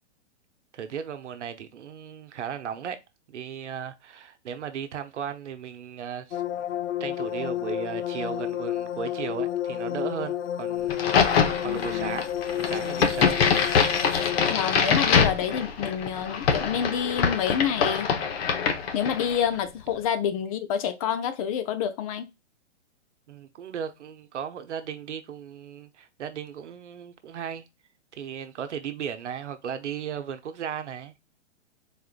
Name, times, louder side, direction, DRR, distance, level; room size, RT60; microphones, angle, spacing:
voice 1, 0.7-3.0 3.3-6.4 7.0-12.3 12.5-13.4 23.3-27.6 28.1-31.1, right 8 dB, 80° right, 0.8 m, -36 dB
sound 1, 6.3-14.5, left 11 dB, 85° left, 0.5 m, -30 dB
Crack, 10.9-19.5, left 6 dB, 55° left, 1.1 m, -24 dB
voice 2, 11.6-12.2 14.5-18.1 18.9-22.3, left 8 dB, 30° left, 0.4 m, -28 dB
4.2 x 3.7 x 2.4 m
hypercardioid pair, 125°, 35 cm